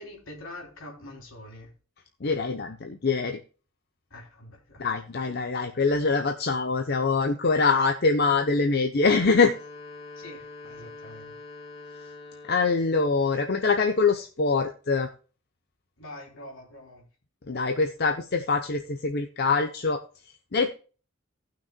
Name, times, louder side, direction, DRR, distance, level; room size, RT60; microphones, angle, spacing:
voice 1, 0.0-1.7 4.1-4.9 10.1-11.4 16.0-17.1, left 1 dB, 75° left, 3.3 m, -44 dB
voice 2, 2.2-3.4 4.8-9.5 12.4-15.1 17.5-20.0 20.5-20.7, left 4 dB, 50° left, 0.7 m, -24 dB
sound 1, 9.0-13.0, left 3 dB, 30° left, 4.4 m, -44 dB
18.5 x 6.1 x 2.2 m
head